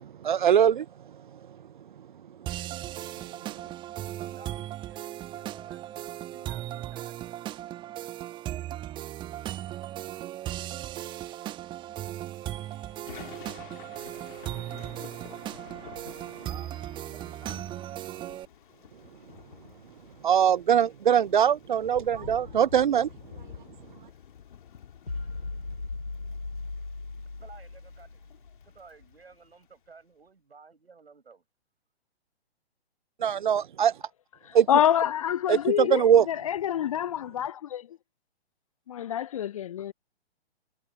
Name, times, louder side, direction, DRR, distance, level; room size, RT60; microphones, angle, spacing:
voice 1, 0.2-0.9 20.2-23.1 33.2-34.0 34.5-34.7 35.5-36.3, right 9 dB, 50° right, 0.6 m, -22 dB
sound 1, 2.5-18.5, right 13 dB, 15° right, 1.5 m, -37 dB
voice 2, 4.2-7.4 16.3-16.7 17.1-17.6 27.4-28.2 28.6-31.4, right 4 dB, 70° right, 7.9 m, -53 dB
Thunder / Rain, 12.2-29.7, left 8 dB, 50° left, 2.3 m, -50 dB
sound 2, 25.1-28.5, left 3 dB, 75° left, 4.8 m, -37 dB
voice 3, 34.4-38.0 38.9-39.9, left 10 dB, 35° left, 0.7 m, -27 dB
figure-of-eight pair, 125°, 32 cm